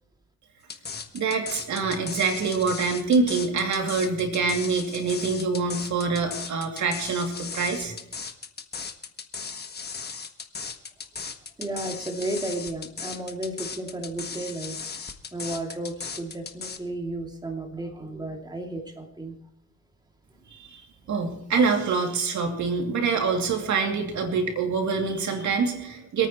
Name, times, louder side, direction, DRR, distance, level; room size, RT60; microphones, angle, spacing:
sound 1, 0.7-16.8, left 5 dB, 35° left, 1.4 m, -37 dB
voice 1, 1.1-7.9 20.5-26.3, right 4 dB, 70° right, 2 dB, 2.7 m, -25 dB
voice 2, 11.6-15.0 15.3-19.4 21.1-21.2, right 1 dB, 15° right, 1 dB, 2.6 m, -33 dB
26.5 x 9.3 x 3.1 m, 0.80 s
cardioid pair, 90°, 30 cm